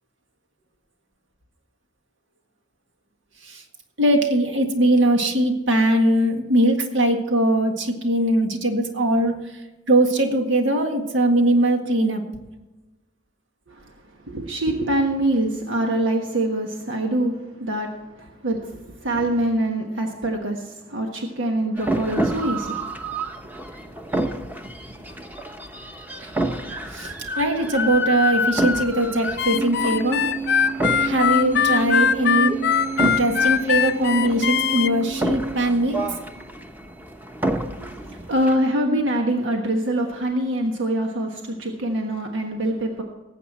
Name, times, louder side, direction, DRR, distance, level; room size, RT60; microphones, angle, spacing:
voice 1, 4.0-9.5 9.9-12.2 26.2-26.3 26.9-30.3 31.0-32.7 33.0-36.0, right 1 dB, 70° right, 4 dB, 1.8 m, -21 dB
voice 2, 14.2-22.9 37.8-43.0, right 1 dB, 90° right, 2 dB, 1.4 m, -25 dB
sound 1, 21.8-38.6, right 1 dB, 10° right, 1.0 m, -28 dB
Harmonica, 29.4-34.9, left 8 dB, 55° left, 0.5 m, -21 dB
19.0 x 8.3 x 4.3 m, 1.1 s
head